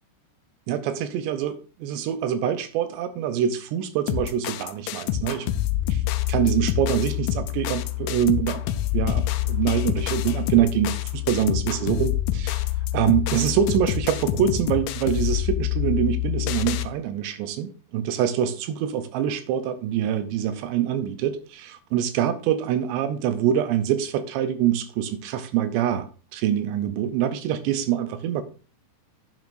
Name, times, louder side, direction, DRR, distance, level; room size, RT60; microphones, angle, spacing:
voice 1, 0.7-5.6 5.9-6.0 6.3-8.6 8.9-12.7 12.9-28.4, right 10 dB, 80° right, 2.6 m, -25 dB
sound 1, 4.1-16.9, left 13 dB, 85° left, 2.9 m, -26 dB
10.5 x 9.3 x 2.6 m
omnidirectional pair, 5.6 m